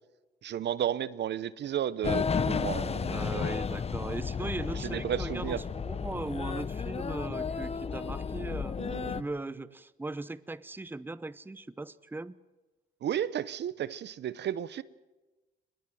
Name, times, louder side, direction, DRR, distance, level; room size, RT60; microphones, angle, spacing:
voice 1, 0.4-3.5 4.8-5.6 8.8-9.3 13.0-14.8, right 10 dB, 60° right, 0.7 m, -33 dB
sound 1, 2.0-9.2, left 5 dB, 30° left, 0.7 m, -33 dB
voice 2, 3.1-8.8 9.1-12.3, right 2 dB, 10° right, 0.7 m, -38 dB
22.5 x 21.0 x 7.7 m
cardioid pair, 90°, 20 cm